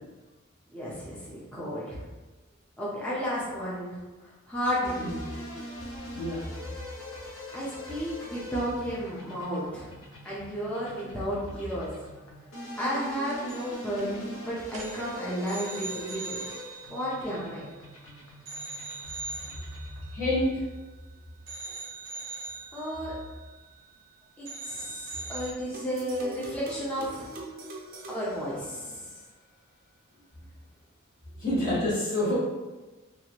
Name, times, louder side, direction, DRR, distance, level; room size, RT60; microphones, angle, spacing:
voice 1, 0.7-2.1 2.8-4.0 4.5-5.1 7.5-9.9 10.2-11.9 12.8-16.4 16.9-17.7 22.7-23.1 24.4-27.3 28.1-29.1, equal, 5° left, -8 dB, 0.6 m, -33 dB
sound 1, 4.8-20.2, left 1 dB, 80° left, 0.7 m, -43 dB
sound 2, 13.3-13.7 14.0-14.2 14.6-18.0 18.5-21.1 21.5-24.1 24.4-25.5, right 3 dB, 85° right, 0.6 m, -42 dB
voice 2, 20.1-20.6 31.3-32.4, left 1 dB, 40° left, -10 dB, 1.4 m, -27 dB
sound 3, 25.7-29.2, right 2 dB, 40° right, 0.5 m, -43 dB
3.1 x 2.4 x 2.9 m, 1.2 s
head